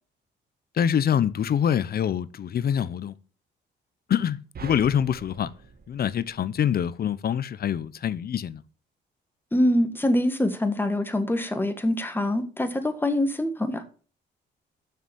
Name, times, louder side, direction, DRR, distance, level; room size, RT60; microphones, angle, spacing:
voice 1, 0.7-3.1 4.1-5.5 5.9-8.6, left 9 dB, 50° left, 0.7 m, -25 dB
sound 1, 4.5-7.0, right 5 dB, 50° right, 1.4 m, -44 dB
voice 2, 9.5-13.9, left 1 dB, 10° left, 1.6 m, -24 dB
6.9 x 6.2 x 7.1 m
cardioid pair, 90°, 20 cm